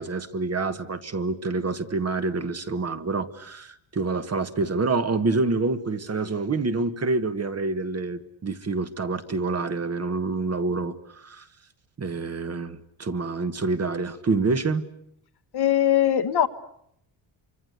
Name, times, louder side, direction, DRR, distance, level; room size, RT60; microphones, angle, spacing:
voice 1, 0.0-11.5 12.0-14.9, right 3 dB, 30° right, 1.5 m, -27 dB
voice 2, 15.5-16.5, left 10 dB, 55° left, 1.4 m, -20 dB
27.5 x 25.0 x 8.2 m
cardioid pair, 135°, 48 cm